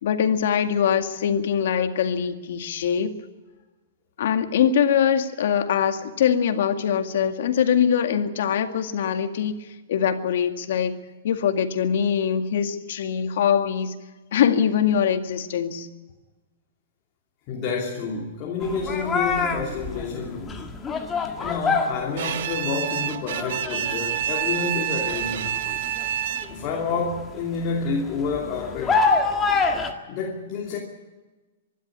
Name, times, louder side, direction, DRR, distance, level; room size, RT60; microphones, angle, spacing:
voice 1, 0.0-3.1 4.2-9.5 9.9-11.0 11.2-13.9 14.3-15.9, left 8 dB, 60° left, 2.0 m, -22 dB
voice 2, 17.5-20.6 21.4-25.6 26.5-29.0 30.1-30.8, left 4 dB, 30° left, 2.8 m, -29 dB
sound 1, 18.6-22.8 23.1-24.5 25.0-29.9, left 4 dB, 15° left, 1.8 m, -26 dB
Bowed string instrument, 22.2-26.8, right 10 dB, 60° right, 1.5 m, -28 dB
24.5 x 12.0 x 9.9 m
hypercardioid pair, 160°, 0 cm